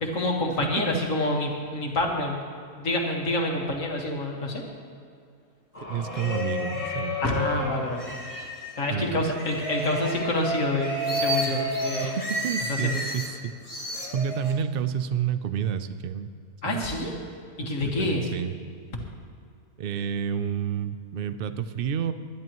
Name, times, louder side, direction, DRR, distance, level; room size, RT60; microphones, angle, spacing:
voice 1, 0.0-2.4 2.8-4.6 7.2-8.1 8.8-12.2 12.7-13.0 16.6-17.1 17.6-18.2, left 2 dB, 60° left, 0 dB, 2.1 m, -27 dB
voice 2, 0.6-1.0 5.9-7.5 8.9-9.3 12.0-16.3 16.7-16.8 17.8-18.5 19.8-22.1, right 8 dB, 70° right, 12 dB, 0.5 m, -30 dB
sound 1, 5.7-8.8 9.4-13.3 13.6-14.5, equal, 25° left, 1.9 m, -31 dB
21.0 x 11.0 x 3.1 m, 2.3 s
omnidirectional pair, 1.6 m